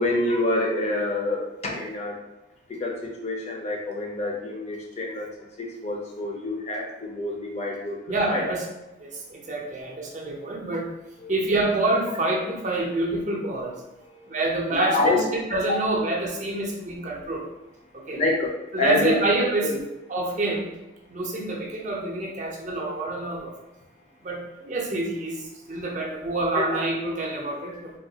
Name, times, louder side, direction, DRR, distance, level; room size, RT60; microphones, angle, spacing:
voice 1, 0.0-2.2 2.7-8.0 8.3-8.5 11.2-11.3 14.0-14.3 14.7-15.3 15.7-15.8 18.1-19.1 19.6-19.8 26.6-26.7, left 2 dB, 35° left, -1 dB, 0.5 m, -27 dB
voice 2, 8.1-8.7 9.0-10.9 11.3-13.8 14.3-17.5 17.9-18.2 18.7-19.7 20.1-20.7 21.1-23.5 24.2-27.9, right 2 dB, 40° right, -1 dB, 0.5 m, -27 dB
3.3 x 2.3 x 2.8 m, 0.99 s
head